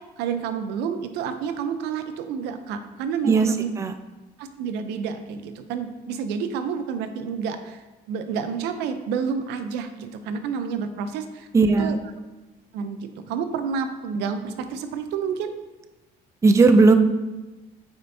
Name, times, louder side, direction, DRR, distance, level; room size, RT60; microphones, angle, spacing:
voice 1, 0.2-3.7 4.4-7.8 8.1-11.5 11.8-12.0 12.7-15.5, right 6 dB, 90° right, 9 dB, 0.6 m, -29 dB
voice 2, 3.2-3.9 11.5-12.0 16.4-16.9, right 3 dB, 15° right, 8 dB, 0.4 m, -17 dB
8.7 x 4.4 x 2.7 m, 1.1 s
cardioid pair, 110°, 17 cm